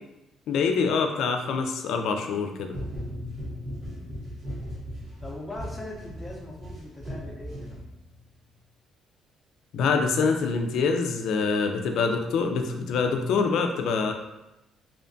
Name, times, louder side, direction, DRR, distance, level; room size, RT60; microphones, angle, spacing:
voice 1, 0.5-2.7 9.7-14.1, left 5 dB, 75° left, 4 dB, 0.3 m, -25 dB
sound 1, 2.7-8.2, equal, 55° right, 0.9 m, -37 dB
voice 2, 5.2-7.8, left 1 dB, 10° left, -2 dB, 0.6 m, -40 dB
2.7 x 2.2 x 2.6 m, 0.96 s
cardioid pair, 110°, 0 cm